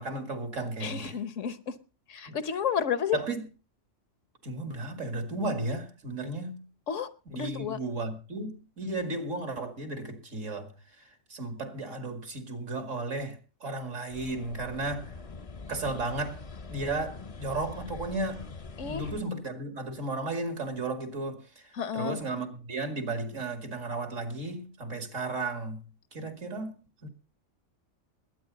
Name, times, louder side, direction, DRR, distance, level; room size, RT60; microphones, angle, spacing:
voice 1, 0.0-1.2 2.3-2.4 3.1-3.4 4.4-6.6 7.3-11.0 11.3-15.1 15.7-16.4 16.7-18.5 18.8-25.8 26.1-27.1, right 2 dB, 80° right, 2.7 m, -34 dB
voice 2, 0.8-1.7 2.1-3.2 6.9-7.8 18.8-19.0 21.7-22.2, left 8 dB, 75° left, 1.3 m, -31 dB
sound 1, 14.1-19.2, left 4 dB, 35° left, 0.6 m, -43 dB
21.0 x 9.5 x 4.0 m
omnidirectional pair, 1.3 m